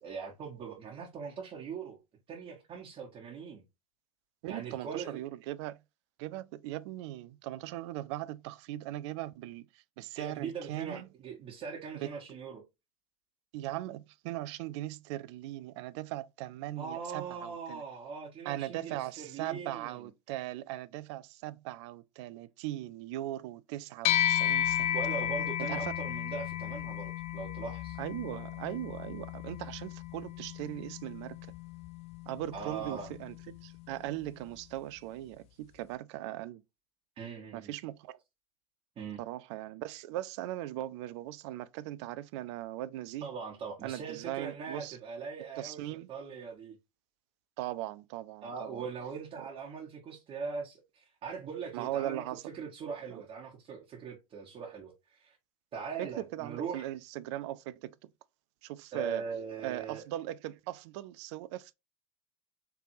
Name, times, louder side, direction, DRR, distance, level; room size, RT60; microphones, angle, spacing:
voice 1, 0.0-2.0 2.3-3.6 4.5-5.2 10.1-12.6 16.8-20.0 24.9-28.0 32.5-33.1 37.2-37.7 39.0-39.2 43.2-46.8 48.4-52.2 52.5-55.4 55.7-56.9 58.9-60.0, right 6 dB, 35° right, 1.4 m, -41 dB
voice 2, 4.4-5.8 6.2-11.1 12.0-12.1 13.5-17.8 18.4-25.0 25.6-26.0 28.0-31.4 32.3-36.6 37.5-38.2 39.2-43.3 43.8-45.0 45.6-46.1 47.6-48.8 51.7-52.4 53.1-53.2 56.0-58.0 58.6-59.2 59.6-61.7, right 14 dB, 55° right, 0.4 m, -39 dB
sound 1, 24.0-33.7, left 12 dB, 35° left, 0.4 m, -34 dB
4.6 x 3.3 x 2.7 m
figure-of-eight pair, 85°, 18 cm